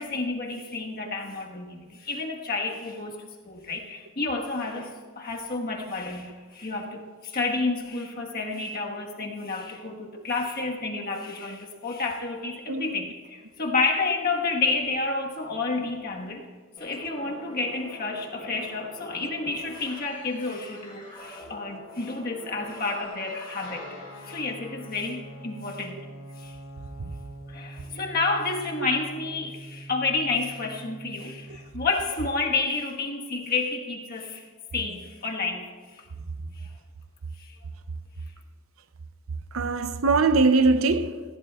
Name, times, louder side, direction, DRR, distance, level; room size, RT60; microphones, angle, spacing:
voice 1, 0.0-16.4 16.8-23.9 24.2-26.0 26.4-26.6 27.4-34.4 34.7-36.1 36.6-36.7 37.4-37.5, left 3 dB, 45° left, 1.4 m, -30 dB
voice 2, 12.7-13.0 39.5-41.2, right 3 dB, 70° right, 0.6 m, -21 dB
sound 1, 16.8-24.4, left 1 dB, 25° left, 3.8 m, -44 dB
Guitar, 23.6-31.7, right 1 dB, 75° left, 2.8 m, -44 dB
19.0 x 15.5 x 2.4 m
head